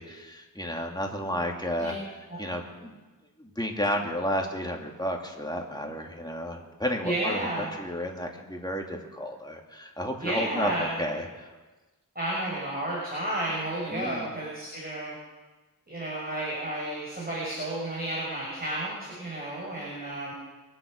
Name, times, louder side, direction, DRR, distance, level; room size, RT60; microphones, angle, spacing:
voice 1, 0.0-1.9 2.4-3.0 3.4-11.5 13.9-14.3, equal, 10° left, 0 dB, 2.7 m, -32 dB
voice 2, 7.0-7.7 10.2-11.1 12.1-15.1 15.9-20.3, right 1 dB, 25° right, -6 dB, 6.0 m, -32 dB
23.5 x 7.9 x 6.5 m, 1.2 s
wide cardioid pair, 45°, 35 cm